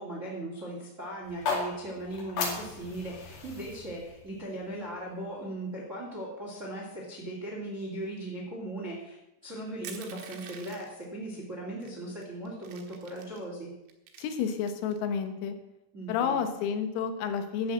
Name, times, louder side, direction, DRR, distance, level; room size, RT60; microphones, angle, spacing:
voice 1, 0.0-13.7 15.9-16.4, right 1 dB, 30° right, -3 dB, 1.5 m, -38 dB
sound 1, 1.2-5.4, left 4 dB, 60° left, 4.3 m, -36 dB
Crushing, 9.8-11.0 11.8-11.9 12.2-13.4 13.9-15.0, right 8 dB, 75° right, 3.6 m, -46 dB
voice 2, 14.2-15.6 16.1-17.7, left 6 dB, 90° left, 7 dB, 3.9 m, -30 dB
12.5 x 7.7 x 7.4 m, 0.93 s
omnidirectional pair, 5.9 m